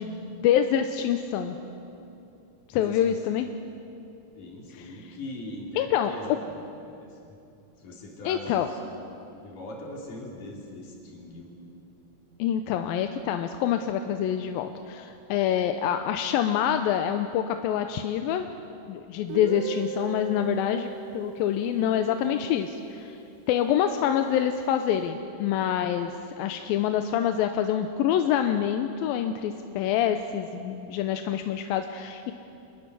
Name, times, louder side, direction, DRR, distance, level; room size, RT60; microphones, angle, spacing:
voice 1, 0.0-1.6 2.7-3.5 5.8-6.1 8.3-8.7 12.4-18.5 18.9-23.2 23.5-32.3, left 9 dB, 90° left, 7 dB, 2.5 m, -26 dB
voice 2, 2.7-3.2 4.4-6.6 7.0-7.3 7.8-9.1 9.4-11.5, left 1 dB, 65° left, -1 dB, 4.8 m, -41 dB
Guitar, 19.3-23.1, right 7 dB, 75° right, 2.7 m, -37 dB
25.5 x 20.0 x 6.9 m, 2.7 s
omnidirectional pair, 4.1 m